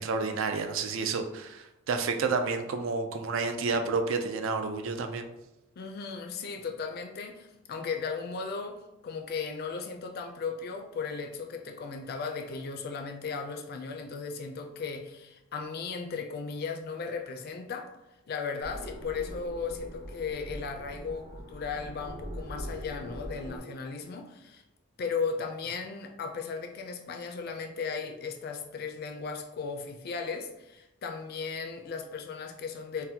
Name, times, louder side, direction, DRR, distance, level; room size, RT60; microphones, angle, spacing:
voice 1, 0.0-5.3, right 4 dB, 70° right, 6 dB, 0.4 m, -30 dB
voice 2, 5.8-17.9 18.3-24.6 25.0-33.1, left 5 dB, 50° left, 4 dB, 0.4 m, -36 dB
sound 1, 18.6-23.6, equal, 35° right, 1.1 m, -42 dB
4.0 x 2.1 x 2.7 m, 0.93 s
head